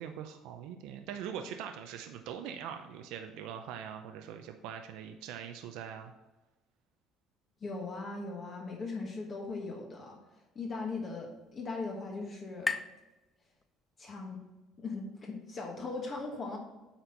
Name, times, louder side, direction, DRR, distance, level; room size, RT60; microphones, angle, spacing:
voice 1, 0.0-6.1, right 8 dB, 75° right, 6 dB, 0.6 m, -42 dB
voice 2, 7.6-12.7 14.0-14.4 14.8-16.6, left 3 dB, 30° left, 0 dB, 1.3 m, -39 dB
sound 1, 10.3-14.1, left 3 dB, 10° left, 0.3 m, -42 dB
8.8 x 4.4 x 5.3 m, 1.1 s
cardioid pair, 155°, 0 cm